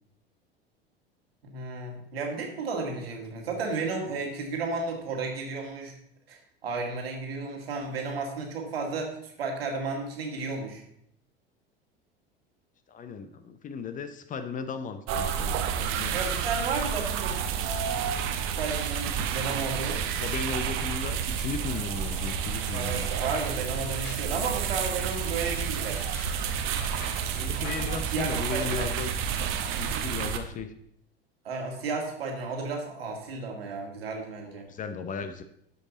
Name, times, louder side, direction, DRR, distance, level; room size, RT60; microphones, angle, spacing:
voice 1, 1.4-5.9 6.3-10.8 16.1-17.6 18.6-20.0 22.7-26.0 28.1-28.9 31.4-34.7, right 4 dB, 70° right, 1 dB, 2.1 m, -33 dB
voice 2, 12.9-16.2 19.9-23.1 27.4-29.1 29.7-30.7 34.4-35.4, left 5 dB, 25° left, 10 dB, 0.7 m, -36 dB
sound 1, 15.1-30.4, right 8 dB, 45° right, 1.0 m, -30 dB
Frying (food), 20.6-29.7, left 2 dB, 50° left, 3.0 m, -47 dB
12.5 x 5.4 x 4.0 m, 0.72 s
figure-of-eight pair, 75°, 31 cm